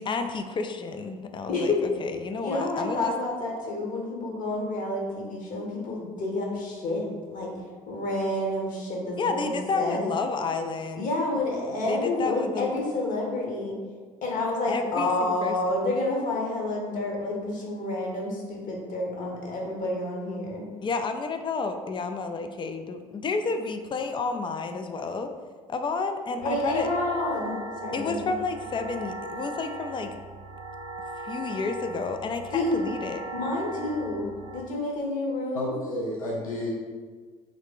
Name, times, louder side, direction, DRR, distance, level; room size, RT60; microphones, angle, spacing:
voice 1, 0.0-3.1 9.2-11.1 11.9-12.7 14.7-15.8 20.8-25.3 25.7-26.9 27.9-30.2 31.2-33.2, left 4 dB, 25° left, 7 dB, 0.4 m, -30 dB
voice 2, 1.5-1.8 2.4-7.0 7.3-7.5 7.9-10.1 11.0-13.7 14.2-20.6 26.4-28.3 32.5-32.8 33.3-35.7, left 2 dB, 45° left, -2 dB, 1.1 m, -29 dB
sound 1, 26.4-34.6, right 2 dB, 55° right, 0.5 m, -39 dB
voice 3, 35.5-36.7, left 1 dB, 80° left, -4 dB, 0.7 m, -31 dB
3.7 x 3.2 x 3.5 m, 1.5 s
figure-of-eight pair, 55°, 18 cm